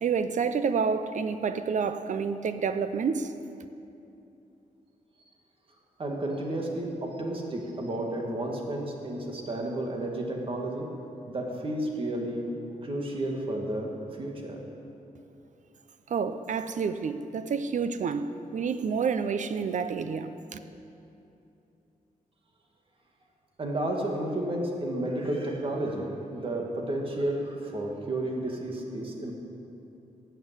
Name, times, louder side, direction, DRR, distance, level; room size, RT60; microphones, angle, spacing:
voice 1, 0.0-3.3 16.1-20.6, right 6 dB, 60° right, 11 dB, 0.7 m, -29 dB
voice 2, 6.0-10.9 11.3-12.5 12.8-13.9 14.2-14.6 23.6-29.3, right 1 dB, 40° right, 0 dB, 2.1 m, -32 dB
17.5 x 6.9 x 8.3 m, 2.8 s
wide cardioid pair, 140°, 15 cm